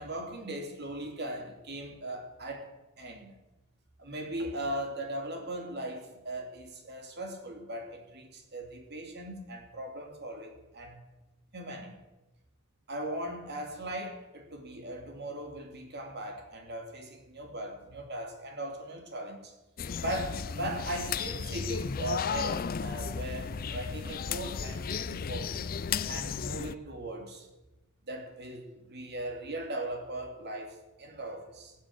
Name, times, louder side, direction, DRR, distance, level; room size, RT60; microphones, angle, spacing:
voice 1, 0.0-2.7 3.0-3.3 4.0-11.0 11.5-11.9 12.9-19.5 20.0-25.6 26.1-27.5 28.1-31.7, right 1 dB, 50° right, 4 dB, 2.7 m, -39 dB
sound 1, 19.8-26.8, left 6 dB, 40° left, 0.4 m, -34 dB
19.0 x 7.3 x 7.7 m, 1.0 s
head